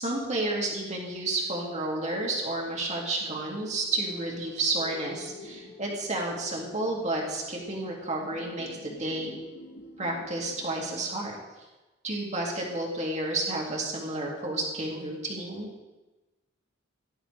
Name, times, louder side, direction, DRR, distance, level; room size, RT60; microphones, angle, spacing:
voice 1, 0.0-9.3 10.0-11.4 12.0-15.7, right 2 dB, 35° right, -2 dB, 2.4 m, -31 dB
sound 1, 3.9-10.9, left 1 dB, 80° left, 2.7 m, -48 dB
17.0 x 11.0 x 3.3 m, 1.1 s
head